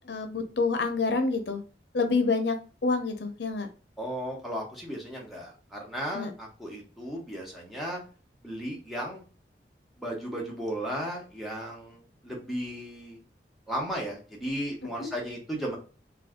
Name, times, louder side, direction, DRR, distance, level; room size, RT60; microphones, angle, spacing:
voice 1, 0.0-1.6 1.9-2.6 2.8-3.7 6.1-6.3 15.0-15.1, left 4 dB, 75° left, 6 dB, 0.6 m, -27 dB
voice 2, 4.0-8.0 8.4-9.2 10.0-13.2 13.7-15.8, equal, ahead, -2 dB, 0.8 m, -35 dB
2.6 x 2.3 x 3.5 m, 0.36 s
head